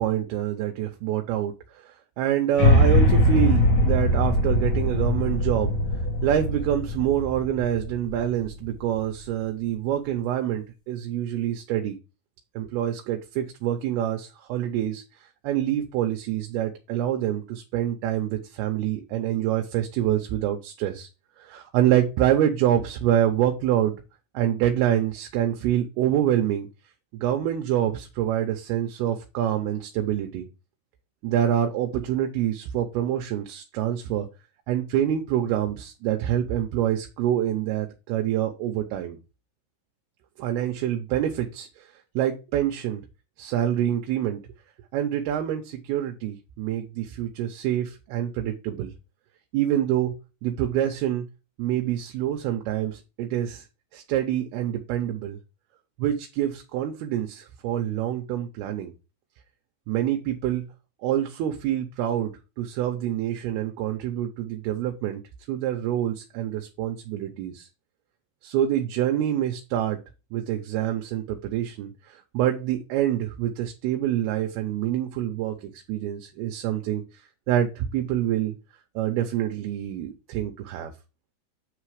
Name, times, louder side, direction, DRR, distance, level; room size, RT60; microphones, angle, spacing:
voice 1, 0.0-1.5 2.2-5.8 6.2-12.0 12.6-15.0 15.4-21.1 21.4-23.9 24.3-26.7 27.1-30.5 31.2-34.3 34.7-39.2 40.4-41.9 42.2-43.0 43.4-44.4 44.9-48.9 49.5-50.1 50.4-51.3 51.6-53.6 53.9-55.4 56.0-58.9 59.9-60.6 61.0-62.3 62.6-65.2 65.5-67.7 68.4-70.0 70.3-77.0 77.5-78.5 79.0-80.9, right 11 dB, 85° right, 4 dB, 2.7 m, -26 dB
sound 1, 2.6-8.8, left 1 dB, 50° left, 1.2 m, -21 dB
8.7 x 3.3 x 4.8 m, 0.29 s
omnidirectional pair, 4.5 m